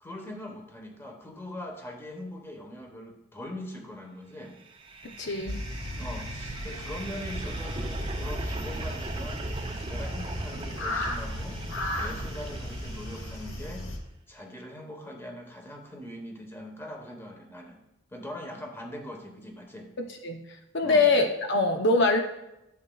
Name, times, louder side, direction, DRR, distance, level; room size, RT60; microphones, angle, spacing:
voice 1, 0.0-4.6 6.0-9.5 9.9-11.6 12.0-13.9 14.3-17.8 18.1-19.9 20.8-21.1, left 1 dB, 10° left, 2 dB, 1.1 m, -41 dB
sound 1, 4.7-13.8, right 2 dB, 25° right, 0.6 m, -38 dB
voice 2, 5.2-5.6 20.2-20.4 20.7-22.2, left 3 dB, 60° left, 4 dB, 0.7 m, -23 dB
sound 2, 5.5-14.0, left 1 dB, 85° left, 1.2 m, -36 dB
12.0 x 7.4 x 2.3 m, 0.91 s
head